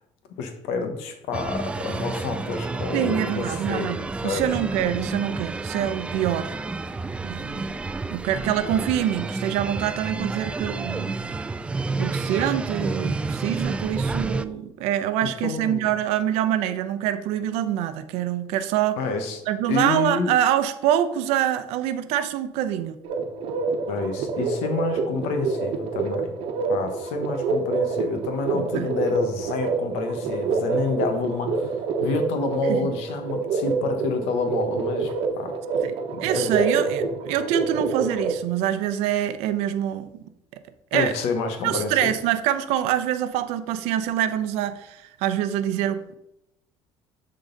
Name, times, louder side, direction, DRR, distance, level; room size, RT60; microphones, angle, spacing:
voice 1, 0.4-4.0 4.2-4.5 15.2-15.9 19.0-19.4 19.7-20.3 23.9-26.3 26.7-35.5 36.1-36.6 40.9-42.1, left 4 dB, 85° left, 6 dB, 1.1 m, -28 dB
sound 1, 1.3-14.5, right 3 dB, 10° right, 0.3 m, -30 dB
voice 2, 2.9-4.0 4.2-6.5 7.2-7.7 8.1-11.2 12.0-19.0 19.5-23.0 28.5-28.9 32.7-32.9 35.8-35.9 36.2-40.2 40.9-41.1 41.6-46.2, right 11 dB, 85° right, 10 dB, 0.7 m, -25 dB
sound 2, 23.0-38.4, right 4 dB, 60° right, 1.0 m, -27 dB
10.5 x 3.9 x 3.9 m, 0.81 s
cardioid pair, 135°, 11 cm